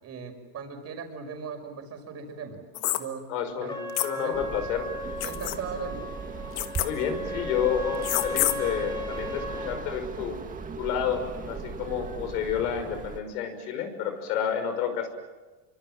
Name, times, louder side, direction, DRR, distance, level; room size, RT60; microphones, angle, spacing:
voice 1, 0.0-2.6 3.0-3.7 4.1-4.4 5.2-6.1, right 6 dB, 30° right, 4 dB, 5.7 m, -38 dB
sound 1, 2.7-3.0 4.0-4.1 5.2-5.6 6.6-6.9 8.0-8.5, left 16 dB, 55° left, 1.9 m, -26 dB
voice 2, 3.3-4.9 6.8-10.4 10.8-15.1, left 8 dB, 70° left, 8 dB, 6.1 m, -30 dB
Trumpet, 3.7-9.9, left 2 dB, 10° left, 3.2 m, -36 dB
sound 2, 4.3-13.2, right 5 dB, 15° right, 1.9 m, -38 dB
27.5 x 24.5 x 7.6 m, 1.2 s
supercardioid pair, 135°, 47 cm